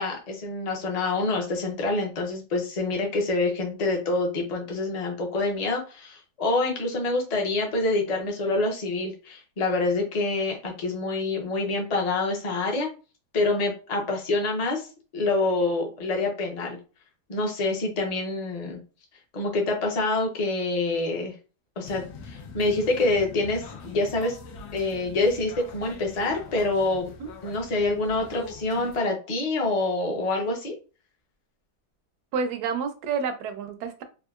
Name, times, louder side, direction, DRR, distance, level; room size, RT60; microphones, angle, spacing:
voice 1, 0.0-12.9 13.3-14.9 15.1-16.8 17.3-18.8 19.3-21.3 21.8-24.4 24.7-27.1 27.4-30.7, left 2 dB, 40° left, 0 dB, 0.6 m, -26 dB
sound 1, 21.8-29.0, left 4 dB, 75° left, 1.1 m, -43 dB
voice 2, 32.3-34.0, right 5 dB, 75° right, 9 dB, 1.1 m, -29 dB
3.6 x 2.4 x 2.3 m, 0.34 s
omnidirectional pair, 1.7 m